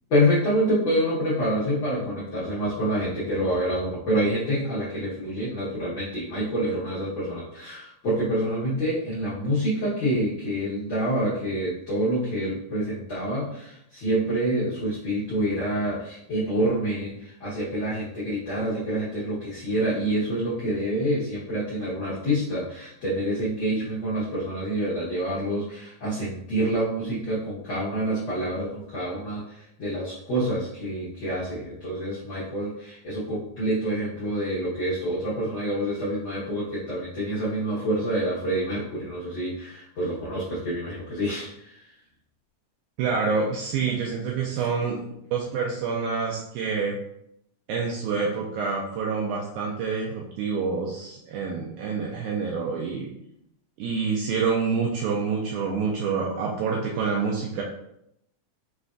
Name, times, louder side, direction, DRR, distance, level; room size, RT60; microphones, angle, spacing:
voice 1, 0.1-41.8, equal, 75° left, -9 dB, 1.1 m, -27 dB
voice 2, 43.0-45.0 45.3-47.0 47.7-53.1 53.8-57.6, right 5 dB, 80° right, -2 dB, 1.9 m, -27 dB
5.1 x 3.3 x 2.4 m, 0.77 s
omnidirectional pair, 3.7 m